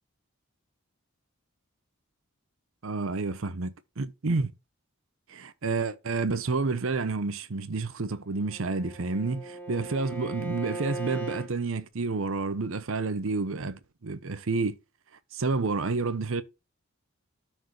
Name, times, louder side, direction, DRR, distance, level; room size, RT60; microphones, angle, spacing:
voice 1, 2.8-4.5 5.3-14.8 15.3-16.4, right 3 dB, 70° right, 0.7 m, -30 dB
Bowed string instrument, 8.3-11.5, right 2 dB, 10° left, 1.4 m, -38 dB
13.5 x 4.6 x 3.0 m
head